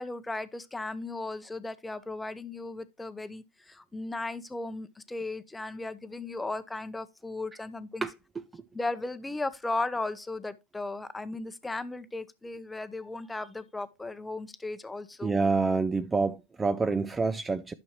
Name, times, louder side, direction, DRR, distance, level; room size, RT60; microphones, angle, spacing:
voice 1, 0.0-8.1 8.7-15.3, left 2 dB, 10° left, 0.8 m, -36 dB
voice 2, 15.2-17.7, right 4 dB, 15° right, 0.5 m, -27 dB
11.5 x 6.2 x 3.1 m
supercardioid pair, 125°, 0 cm